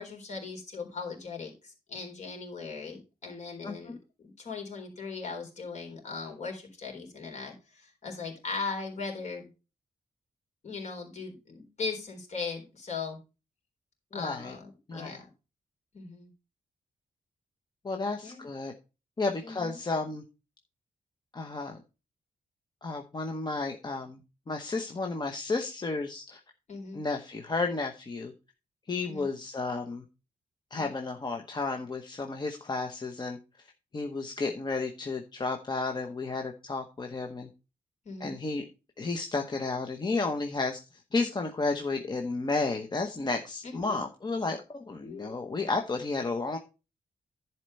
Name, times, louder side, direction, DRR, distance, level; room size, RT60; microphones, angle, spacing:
voice 1, 0.0-9.5 10.6-13.2 14.1-15.3 15.9-16.3 18.2-18.5 19.4-19.8 26.7-27.0 29.1-29.3 30.8-30.9 38.1-38.4 43.6-44.0 45.0-45.4, left 4 dB, 50° left, 2 dB, 3.8 m, -39 dB
voice 2, 3.6-4.0 14.1-14.6 14.9-15.2 17.8-18.7 19.2-20.2 21.3-21.8 22.8-24.2 24.5-26.4 26.9-28.3 28.9-30.0 30.7-33.7 33.9-37.5 38.2-38.6 39.0-46.6, left 3 dB, 30° left, 3 dB, 1.0 m, -32 dB
11.0 x 4.5 x 5.3 m, 0.30 s
wide cardioid pair, 145°, 15 cm